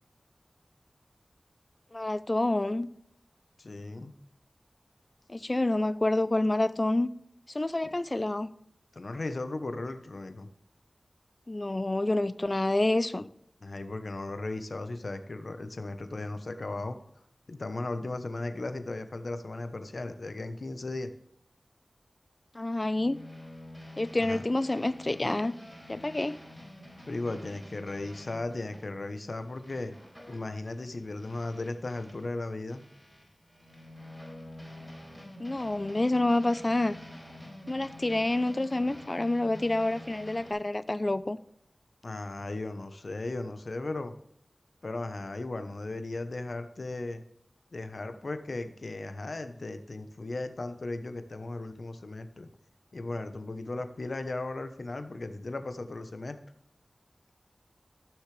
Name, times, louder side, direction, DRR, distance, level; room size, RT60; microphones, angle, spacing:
voice 1, 1.9-2.9 5.3-7.1 7.5-8.5 11.5-13.3 22.5-23.2 24.0-25.5 25.9-26.4 35.4-37.0 37.7-41.4, left 2 dB, 40° left, 0.6 m, -28 dB
voice 2, 3.6-4.1 7.8-7.9 8.9-10.5 13.6-17.0 17.5-21.1 24.3-24.4 27.1-29.9 30.3-32.8 42.0-44.1 44.8-47.2 47.7-52.5 52.9-56.4, left 2 dB, 75° left, 1.0 m, -36 dB
sound 1, 22.8-32.3 32.7-40.5, left 1 dB, 5° right, 4.3 m, -48 dB
15.0 x 6.4 x 3.3 m
wide cardioid pair, 40°, 0 cm